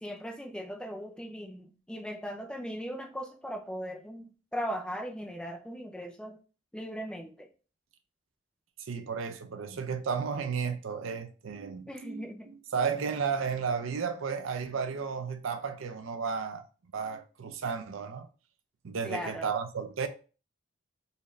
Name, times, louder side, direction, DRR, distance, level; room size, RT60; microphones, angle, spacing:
voice 1, 0.0-6.4 6.7-7.5 11.9-12.5 19.0-19.5, equal, 5° left, 0.4 m, -38 dB
voice 2, 8.8-16.7 16.9-18.3 18.8-20.1, right 6 dB, 70° right, 0.5 m, -33 dB
4.1 x 2.5 x 3.1 m
head